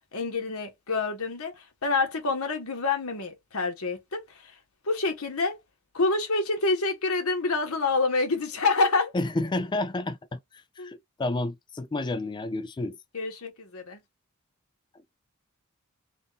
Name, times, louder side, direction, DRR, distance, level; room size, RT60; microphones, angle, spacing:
voice 1, 0.1-4.5 4.8-5.6 5.9-9.1 10.8-10.9 13.1-14.0, left 3 dB, 75° left, 1.3 m, -27 dB
voice 2, 9.1-10.4 10.8-13.0, left 2 dB, 20° left, 0.4 m, -30 dB
3.6 x 2.5 x 4.0 m
head